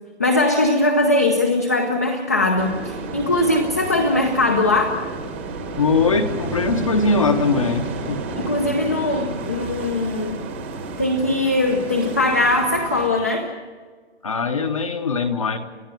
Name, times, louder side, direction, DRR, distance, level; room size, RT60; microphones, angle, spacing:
voice 1, 0.2-5.0 8.4-10.4 11.0-13.5, left 2 dB, 15° left, 3 dB, 0.7 m, -20 dB
sound 1, 2.6-13.1, right 3 dB, 10° right, 1.2 m, -31 dB
voice 2, 5.8-8.2 14.2-15.6, left 4 dB, 30° left, 6 dB, 1.1 m, -21 dB
30.0 x 11.5 x 9.2 m, 1.5 s
hypercardioid pair, 175°, 33 cm